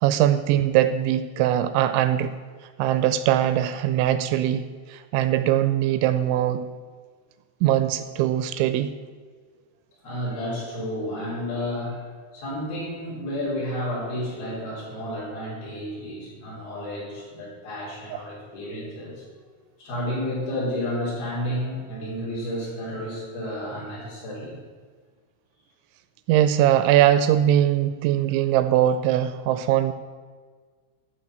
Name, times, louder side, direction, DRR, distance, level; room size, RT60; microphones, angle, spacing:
voice 1, 0.0-2.3 2.8-6.7 7.6-8.9 26.3-29.9, right 11 dB, 85° right, 11 dB, 2.8 m, -21 dB
voice 2, 10.0-12.1 12.3-19.2 19.8-24.6, left 1 dB, 55° left, -6 dB, 5.3 m, -31 dB
14.0 x 4.9 x 6.5 m, 1.5 s
omnidirectional pair, 5.5 m